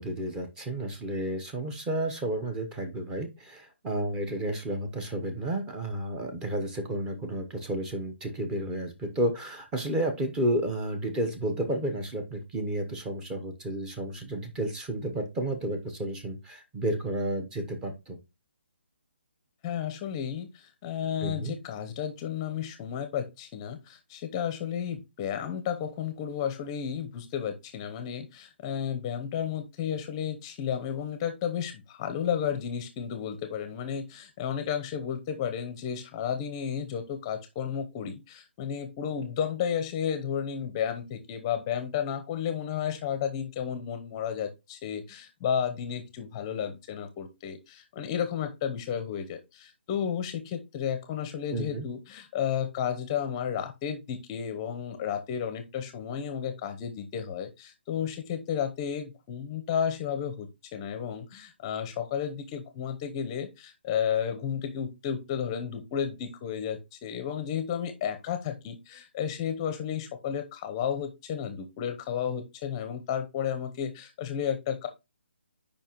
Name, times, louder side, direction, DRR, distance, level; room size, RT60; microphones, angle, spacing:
voice 1, 0.0-18.2 21.2-21.5 51.5-51.9, right 1 dB, 15° right, 6 dB, 1.0 m, -31 dB
voice 2, 19.6-74.9, left 8 dB, 25° left, 8 dB, 0.7 m, -32 dB
6.9 x 5.2 x 3.0 m, 0.25 s
hypercardioid pair, 150°, 6 cm